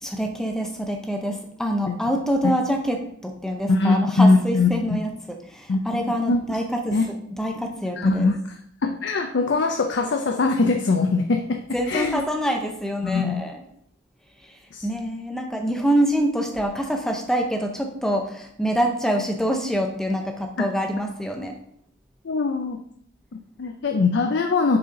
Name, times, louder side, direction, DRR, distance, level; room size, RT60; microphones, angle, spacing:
voice 1, 0.0-7.0 7.4-8.3 11.7-13.6 14.4-21.6, equal, 5° left, 3 dB, 0.6 m, -26 dB
voice 2, 3.7-4.7 5.7-6.4 6.9-7.0 8.0-8.6 8.8-11.6 11.9-12.2 13.0-13.4 14.7-14.9 20.6-20.7 22.2-22.8 23.3-24.8, left 3 dB, 60° left, 4 dB, 0.4 m, -21 dB
6.8 x 4.2 x 3.7 m, 0.71 s
head